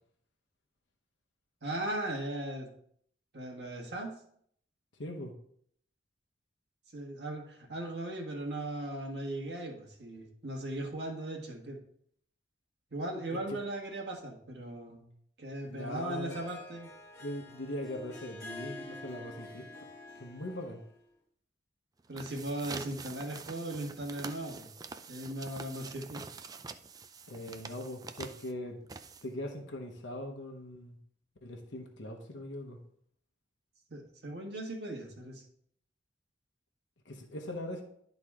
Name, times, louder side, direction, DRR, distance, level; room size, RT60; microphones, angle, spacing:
voice 1, 1.6-2.7 3.3-4.1 6.9-11.8 12.9-15.0 15.4-16.9 22.1-24.7 25.1-26.2 33.9-35.4, right 1 dB, 60° right, 0 dB, 1.7 m, -38 dB
voice 2, 5.0-5.3 13.5-13.6 15.7-16.4 17.2-19.7 20.2-20.8 27.3-28.8 29.2-31.0 31.4-32.8 37.1-37.8, left 1 dB, 85° left, 3 dB, 1.0 m, -40 dB
Harp, 15.7-21.0, left 1 dB, 15° left, 1.3 m, -48 dB
sound 1, 22.0-29.5, right 4 dB, 20° right, 0.3 m, -46 dB
11.5 x 4.1 x 3.6 m, 0.66 s
head